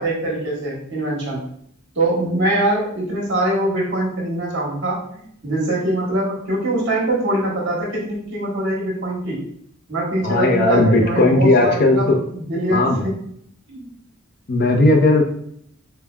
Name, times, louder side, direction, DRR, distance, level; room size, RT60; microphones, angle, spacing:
voice 1, 0.0-1.4 1.9-9.4 9.9-13.2 13.7-13.9, right 1 dB, 55° right, -3 dB, 1.3 m, -23 dB
voice 2, 10.2-12.2 12.7-13.0 14.5-15.2, left 2 dB, 45° left, 1 dB, 0.6 m, -16 dB
5.3 x 2.2 x 2.3 m, 0.66 s
head